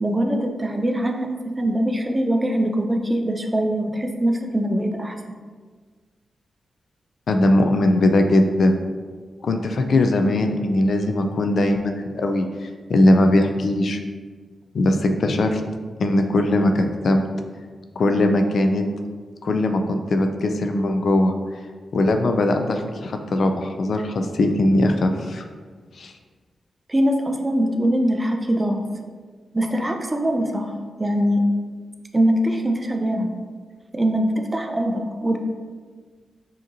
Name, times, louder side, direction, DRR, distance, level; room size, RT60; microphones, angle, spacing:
voice 1, 0.0-5.2 26.9-28.9 29.5-30.7 31.0-31.4 32.1-33.4 33.9-35.4, right 1 dB, 20° right, 4 dB, 0.4 m, -22 dB
voice 2, 7.3-8.7 9.4-14.0 14.7-15.6 16.0-17.3 18.0-18.8 19.4-21.3 21.9-25.4 26.0-26.1, left 1 dB, 65° left, 5 dB, 0.3 m, -20 dB
5.0 x 2.8 x 2.6 m, 1.5 s
wide cardioid pair, 115°, 0 cm